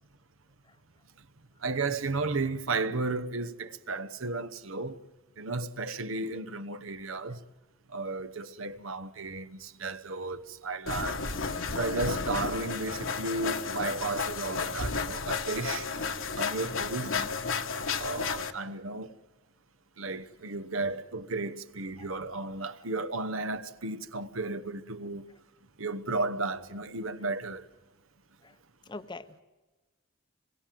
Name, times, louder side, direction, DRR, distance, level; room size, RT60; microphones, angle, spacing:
voice 1, 1.6-5.0 5.4-7.4 7.9-11.3 11.8-15.9 16.3-17.2 18.0-19.1 20.0-25.2 25.8-27.6, right 3 dB, 75° right, 1.1 m, -34 dB
sound 1, 10.9-18.5, left 5 dB, 70° left, 1.5 m, -32 dB
voice 2, 17.0-17.3 22.0-22.2 28.4-28.6 28.8-29.4, left 2 dB, 20° left, 0.8 m, -46 dB
26.5 x 22.5 x 7.7 m
head